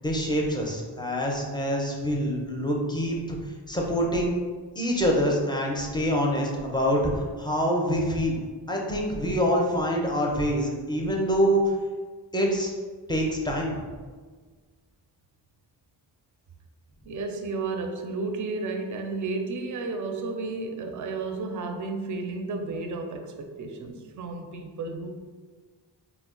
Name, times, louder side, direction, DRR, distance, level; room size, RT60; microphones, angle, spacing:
voice 1, 0.0-3.4 3.7-4.3 4.7-7.0 7.4-8.4 8.7-11.6 12.3-12.7 13.1-13.8, equal, 10° left, -1 dB, 0.5 m, -25 dB
voice 2, 17.1-25.1, right 3 dB, 45° right, 4 dB, 0.4 m, -32 dB
2.2 x 2.1 x 3.7 m, 1.5 s
cardioid pair, 65°, 43 cm